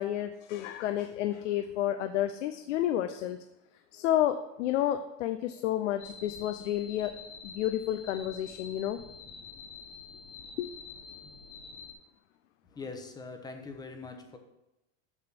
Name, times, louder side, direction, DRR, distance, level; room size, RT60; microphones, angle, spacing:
voice 1, 0.0-3.4 3.9-7.1 7.4-9.0 10.6-10.7, left 12 dB, 85° left, 9 dB, 0.7 m, -30 dB
sound 1, 6.0-11.9, left 5 dB, 55° left, 3.1 m, -47 dB
voice 2, 12.7-14.4, left 4 dB, 10° left, 6 dB, 0.8 m, -42 dB
7.4 x 6.9 x 5.9 m, 0.92 s
supercardioid pair, 155°, 36 cm